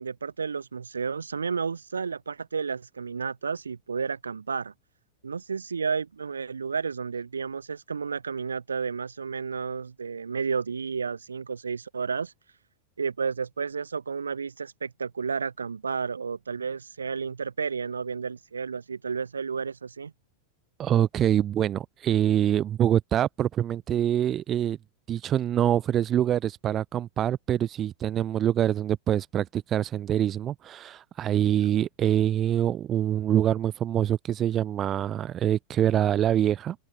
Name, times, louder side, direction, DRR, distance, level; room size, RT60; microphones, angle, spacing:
voice 1, 0.0-4.7 5.2-12.3 13.0-20.1 31.5-31.8, right 5 dB, 75° right, 3.8 m, -32 dB
voice 2, 20.8-24.8 25.1-36.8, right 11 dB, 30° right, 3.2 m, -25 dB
open air
figure-of-eight pair, 90°, 0 cm